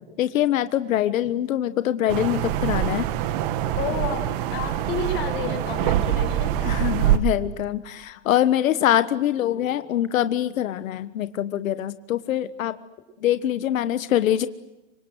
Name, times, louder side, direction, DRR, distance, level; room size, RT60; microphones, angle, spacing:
voice 1, 0.2-3.1 6.6-12.8 13.2-14.5, left 12 dB, 85° left, 12 dB, 1.4 m, -24 dB
sound 1, 2.1-7.2, right 12 dB, 40° right, 2.0 m, -24 dB
voice 2, 3.8-4.2 4.5-6.6, left 5 dB, 30° left, 6 dB, 5.8 m, -30 dB
sound 2, 8.6-10.5, right 1 dB, ahead, 3.8 m, -49 dB
29.0 x 25.5 x 8.0 m, 1.0 s
supercardioid pair, 175°, 39 cm